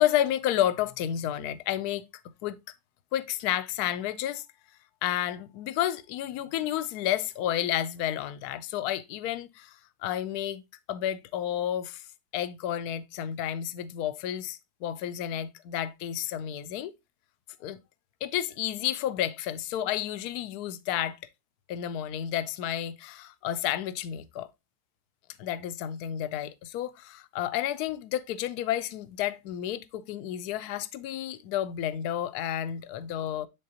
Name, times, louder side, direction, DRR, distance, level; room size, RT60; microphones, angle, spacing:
voice 1, 0.0-2.1 2.4-2.6 3.1-4.4 5.0-9.7 10.0-10.6 10.9-12.0 12.3-16.9 17.6-17.8 18.2-21.2 21.7-24.5 25.4-33.5, left 11 dB, 70° left, 1.0 m, -31 dB
10.0 x 3.8 x 2.7 m
omnidirectional pair, 1.9 m